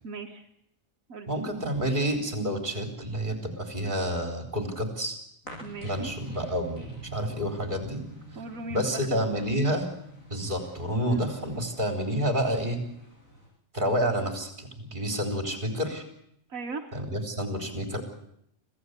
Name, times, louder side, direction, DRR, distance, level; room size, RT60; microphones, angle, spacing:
voice 1, 0.0-0.4 1.1-1.3 5.6-6.1 8.4-9.3 11.1-11.3 16.5-16.9, right 3 dB, 85° right, 3 dB, 1.9 m, -38 dB
voice 2, 1.3-5.2 5.8-8.0 8.7-9.9 10.3-12.8 13.7-16.0 16.9-18.0, equal, 35° right, 4 dB, 4.3 m, -29 dB
sound 1, 5.4-13.5, equal, 80° left, 8.8 m, -47 dB
26.0 x 16.0 x 8.3 m, 0.74 s
omnidirectional pair, 1.4 m